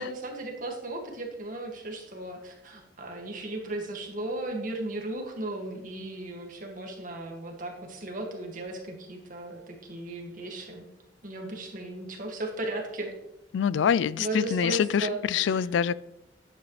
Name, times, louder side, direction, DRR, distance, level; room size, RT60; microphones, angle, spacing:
voice 1, 0.0-10.9 11.2-13.1 14.2-15.7, right 1 dB, 45° right, 2.0 m, -36 dB
voice 2, 13.5-16.0, left 7 dB, 90° left, 0.3 m, -25 dB
11.0 x 8.9 x 3.2 m
head